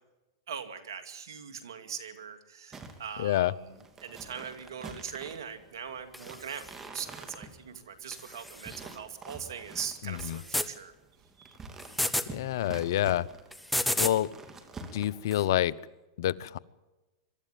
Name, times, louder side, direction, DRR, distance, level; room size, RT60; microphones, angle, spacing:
voice 1, 0.5-10.9 11.4-11.6, right 7 dB, 80° right, 9 dB, 2.5 m, -41 dB
sound 1, 2.7-15.5, right 3 dB, 20° right, 2.9 m, -48 dB
voice 2, 3.2-3.5 10.1-10.4 12.3-13.3 14.0-14.3 14.9-15.7 16.2-16.6, left 13 dB, 65° left, 21 dB, 0.7 m, -27 dB
sound 2, 6.1-6.9 8.1-9.0 10.2-10.7 11.8-12.3 13.5-14.2 15.3-15.5, left 1 dB, 5° left, 1.2 m, -32 dB
23.0 x 13.0 x 9.1 m, 1.1 s
hypercardioid pair, 115°, 2 cm